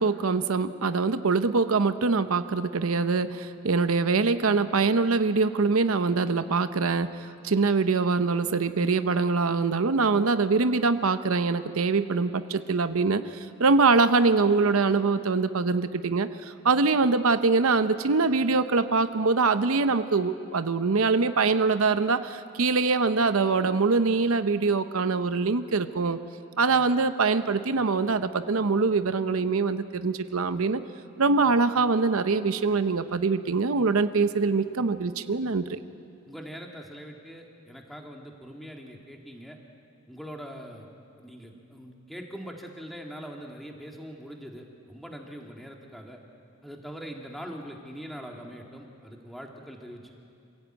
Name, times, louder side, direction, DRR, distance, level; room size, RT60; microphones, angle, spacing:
voice 1, 0.0-26.2 26.6-30.8 31.2-35.8, right 4 dB, 80° right, 11 dB, 0.7 m, -24 dB
voice 2, 36.3-39.6 40.1-40.9 41.2-46.2 46.6-50.1, equal, ahead, 0 dB, 2.0 m, -42 dB
26.5 x 16.0 x 9.0 m, 2.6 s
head